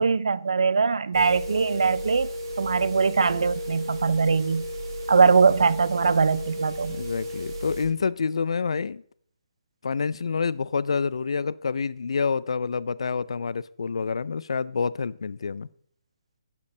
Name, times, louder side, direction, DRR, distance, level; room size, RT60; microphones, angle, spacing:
voice 1, 0.0-2.3 2.6-4.6 5.1-7.0, right 5 dB, 85° right, 0.5 m, -21 dB
sound 1, 1.1-7.8, equal, 35° right, 3.5 m, -34 dB
voice 2, 6.9-9.0 9.8-15.7, left 5 dB, 80° left, 0.4 m, -27 dB
11.5 x 8.3 x 3.2 m
hypercardioid pair, 160°, 3 cm